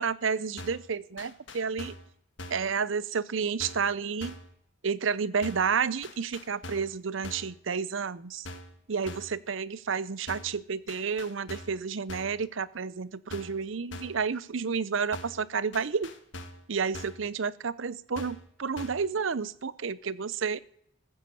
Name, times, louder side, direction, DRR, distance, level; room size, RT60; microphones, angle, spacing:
voice 1, 0.0-2.0 2.5-4.4 4.8-8.5 8.9-16.1 16.7-20.6, right 5 dB, 75° right, 19 dB, 0.6 m, -31 dB
sound 1, 0.6-0.9 1.2-2.1 2.4-2.7 3.6-3.9 4.2-4.5 5.4-5.7 6.0-7.0 7.2-7.6 8.5-8.8 9.1-9.4 10.3-10.6 10.9-11.8 12.1-12.4 13.3-13.6 13.9-14.2 15.1-15.5 15.7-16.7 16.9-17.3 18.2-18.5 18.8-19.1, left 1 dB, 65° left, 1.8 m, -43 dB
14.5 x 8.0 x 8.2 m, 0.69 s
head